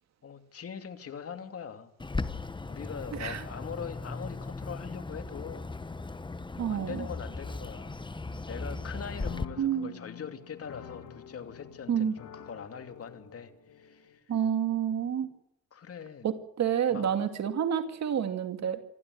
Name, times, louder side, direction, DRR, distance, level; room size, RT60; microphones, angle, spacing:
voice 1, 0.2-1.9 2.6-5.7 6.7-8.0 8.5-14.2 15.7-16.3 16.9-17.1, left 7 dB, 50° left, 7 dB, 2.8 m, -42 dB
Bird, 2.0-9.5, left 3 dB, 15° left, 1.2 m, -37 dB
voice 2, 6.6-7.1 9.6-9.9 11.9-12.1 14.3-15.3 16.2-18.8, right 8 dB, 60° right, 7 dB, 2.5 m, -29 dB
sound 1, 8.6-14.2, left 8 dB, 70° left, 3.6 m, -48 dB
27.5 x 12.5 x 9.4 m, 0.78 s
cardioid pair, 90°, 30 cm